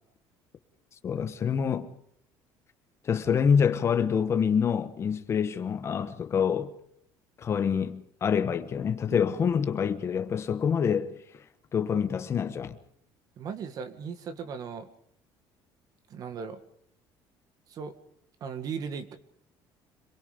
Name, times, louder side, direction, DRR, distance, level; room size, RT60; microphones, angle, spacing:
voice 1, 1.0-1.9 3.0-6.7 7.4-11.1 11.7-12.8, left 7 dB, 30° left, 1.2 m, -26 dB
voice 2, 13.4-14.9 16.1-16.6 17.7-17.9 18.4-19.1, right 6 dB, 45° right, 1.9 m, -37 dB
26.5 x 21.5 x 5.2 m
cardioid pair, 165°, 9 cm